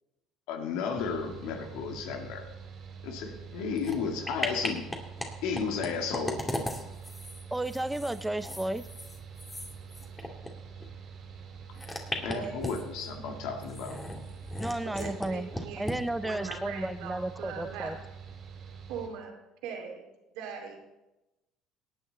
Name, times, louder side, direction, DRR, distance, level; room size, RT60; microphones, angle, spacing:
voice 1, 0.5-2.5 3.0-4.8 5.4-6.4 12.2-14.0, left 5 dB, 75° left, 4 dB, 1.9 m, -33 dB
Mechanical fan, 1.0-19.1, right 6 dB, 55° right, 3.0 m, -46 dB
sound 1, 3.8-4.0 4.2-5.3 5.5-10.5 10.8-10.9 11.7-13.0 13.6-15.3 15.5-16.0 16.5-16.6, left 1 dB, 15° left, 2.3 m, -37 dB
voice 2, 7.5-8.8 14.6-18.0, right 1 dB, 10° right, 13 dB, 0.8 m, -33 dB
voice 3, 12.3-12.8 14.8-15.8 16.2-18.0 18.9-19.4 19.6-20.0 20.3-20.8, right 6 dB, 75° right, 2 dB, 2.5 m, -40 dB
18.5 x 8.6 x 4.0 m, 0.98 s
supercardioid pair, 75°, 0 cm